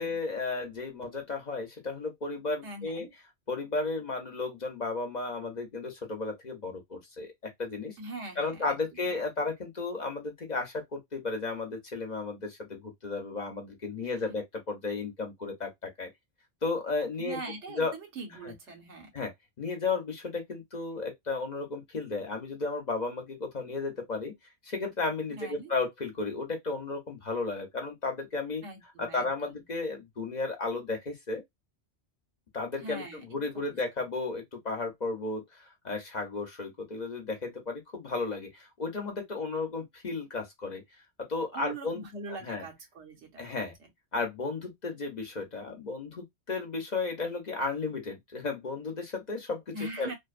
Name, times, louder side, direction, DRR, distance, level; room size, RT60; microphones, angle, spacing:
voice 1, 0.0-3.1 3.5-8.0 8.4-16.1 16.6-17.4 17.7-17.9 19.1-19.3 19.6-24.3 24.6-28.6 29.0-31.4 32.5-40.8 41.2-42.0 42.4-42.6 43.4-43.7 44.1-50.1, left 3 dB, 45° left, 0.7 m, -34 dB
voice 2, 2.6-3.1 8.0-8.8 9.1-9.2 14.0-14.3 17.2-19.1 25.3-25.7 28.6-29.6 32.8-33.2 33.5-33.8 41.5-43.7 49.7-50.1, right 3 dB, 85° right, 1.2 m, -42 dB
2.6 x 2.1 x 2.4 m
omnidirectional pair, 1.1 m